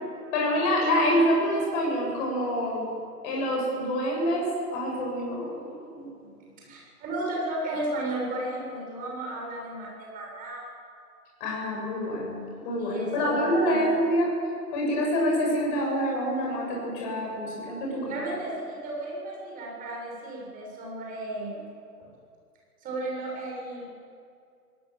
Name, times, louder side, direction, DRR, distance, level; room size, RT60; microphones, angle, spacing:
voice 1, 0.3-2.9 3.2-6.1 11.4-14.3 14.7-18.2, equal, 30° left, -2 dB, 7.0 m, -26 dB
voice 2, 6.2-10.6 12.8-13.7 18.1-21.7 22.0-22.1 22.8-23.9, right 1 dB, 15° right, -2 dB, 7.0 m, -34 dB
23.5 x 18.5 x 7.5 m, 2.3 s
figure-of-eight pair, 135°, 48 cm